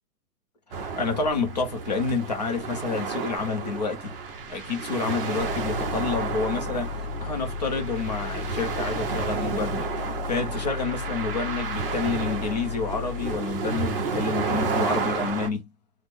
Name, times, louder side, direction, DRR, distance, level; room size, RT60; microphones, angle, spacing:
voice 1, 0.7-4.2 4.5-9.9 10.3-15.7, left 4 dB, 30° left, 0.4 m, -29 dB
sound 1, 0.7-15.5, right 5 dB, 40° right, 0.5 m, -31 dB
sound 2, 5.4-13.4, left 8 dB, 80° left, 0.6 m, -35 dB
3.5 x 2.0 x 3.0 m
hypercardioid pair, 160°, 46 cm